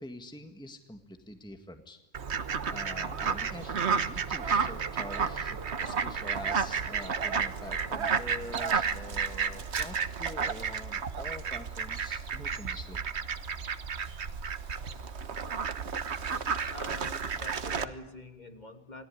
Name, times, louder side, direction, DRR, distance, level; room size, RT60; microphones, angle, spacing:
voice 1, 0.0-2.0 2.7-13.0, left 1 dB, 5° left, 6 dB, 1.8 m, -45 dB
Fowl, 2.1-17.8, right 6 dB, 65° right, 1.5 m, -32 dB
voice 2, 16.7-19.1, left 2 dB, 35° left, 6 dB, 2.7 m, -45 dB
28.5 x 21.5 x 9.8 m, 0.98 s
omnidirectional pair, 1.3 m